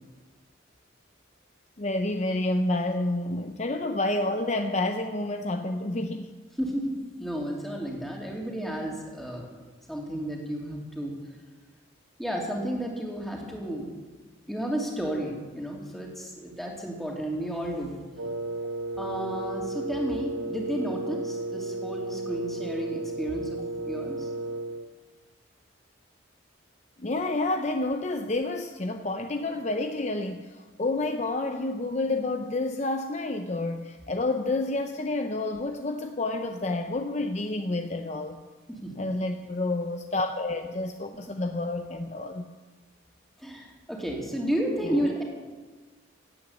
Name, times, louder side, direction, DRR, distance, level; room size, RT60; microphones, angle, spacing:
voice 1, 1.8-6.3 27.0-38.4 39.0-42.5 44.8-45.2, left 2 dB, 35° left, 6 dB, 0.6 m, -29 dB
voice 2, 6.6-9.5 9.9-11.1 12.2-13.9 14.5-17.9 19.0-23.6 23.9-24.3 38.7-38.9 43.4-45.2, right 1 dB, ahead, -2 dB, 2.7 m, -32 dB
Wind instrument woodwind instrument, 18.2-24.9, right 2 dB, 60° right, 0.6 m, -34 dB
16.5 x 9.3 x 8.3 m, 1.4 s
head